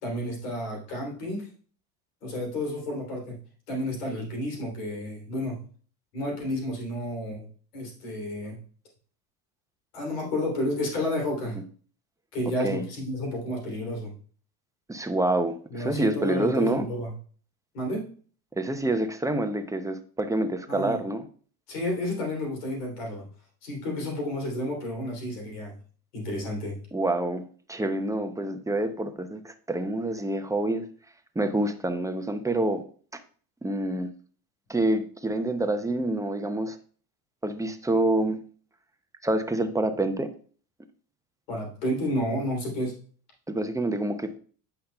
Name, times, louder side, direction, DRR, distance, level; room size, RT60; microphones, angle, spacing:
voice 1, 0.0-1.5 2.2-3.4 3.7-5.6 6.1-7.5 7.7-8.6 9.9-11.6 12.3-14.1 15.7-17.1 17.7-18.0 20.7-21.0 21.7-23.2 23.6-25.8 26.1-26.8 41.5-42.9, left 1 dB, 85° left, 0 dB, 3.0 m, -31 dB
voice 2, 14.9-16.9 18.6-21.3 26.9-27.4 27.7-30.9 31.4-32.8 33.6-34.1 34.7-36.8 37.4-38.4 39.2-40.3 43.5-44.4, right 1 dB, 5° right, 8 dB, 0.6 m, -27 dB
8.4 x 5.8 x 2.2 m, 0.43 s
hypercardioid pair, 85°, 45 cm